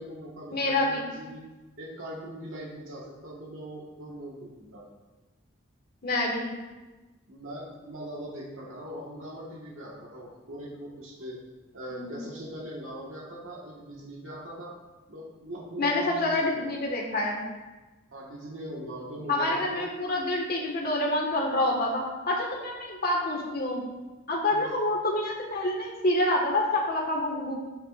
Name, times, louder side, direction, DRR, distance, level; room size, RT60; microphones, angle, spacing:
voice 1, 0.0-1.4 1.8-4.8 7.3-11.4 11.7-14.7 15.1-16.7 18.1-19.8 24.5-24.7, right 1 dB, 75° right, -5 dB, 1.8 m, -41 dB
voice 2, 0.5-1.1 6.0-6.5 11.9-12.2 15.8-17.4 19.3-23.8 24.3-27.5, left 1 dB, 50° left, -2 dB, 1.8 m, -27 dB
13.5 x 7.5 x 2.6 m, 1.2 s
head